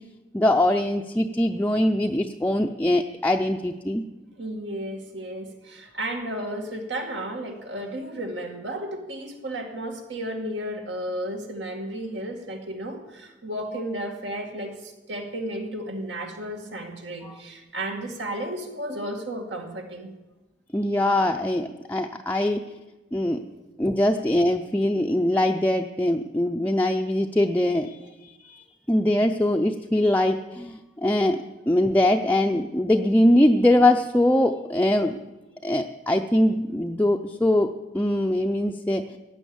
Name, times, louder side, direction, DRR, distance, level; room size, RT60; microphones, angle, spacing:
voice 1, 0.3-4.0 17.2-17.3 20.7-22.7 23.1-23.4 23.8-28.0 28.2-35.1 35.6-39.2, left 1 dB, 10° left, 2 dB, 0.5 m, -22 dB
voice 2, 4.4-20.1 23.3-23.4, right 1 dB, 75° right, 3 dB, 2.3 m, -33 dB
15.5 x 10.0 x 7.2 m, 1.1 s
head